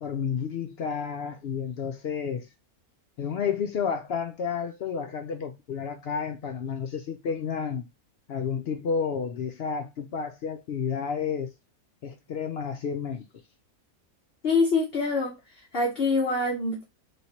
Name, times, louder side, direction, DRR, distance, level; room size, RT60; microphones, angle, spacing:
voice 1, 0.0-2.5 3.2-7.9 8.3-11.5 12.0-13.3, left 6 dB, 75° left, 0.5 m, -31 dB
voice 2, 14.4-15.4 15.7-16.8, left 3 dB, 45° left, 0.9 m, -25 dB
3.2 x 3.1 x 2.7 m
omnidirectional pair, 1.6 m